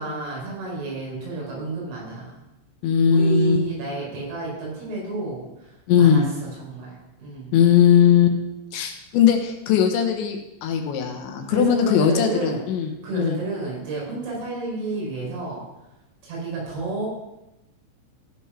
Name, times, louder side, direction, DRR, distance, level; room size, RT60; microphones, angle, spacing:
voice 1, 0.0-2.3 3.1-7.5 11.5-12.6 13.0-15.6 16.2-17.1, right 2 dB, 75° right, -4 dB, 6.9 m, -31 dB
voice 2, 2.8-3.6 5.9-6.3 7.5-8.4 8.7-13.4, left 8 dB, 75° left, 4 dB, 3.1 m, -19 dB
15.0 x 5.3 x 5.8 m, 0.93 s
omnidirectional pair, 5.5 m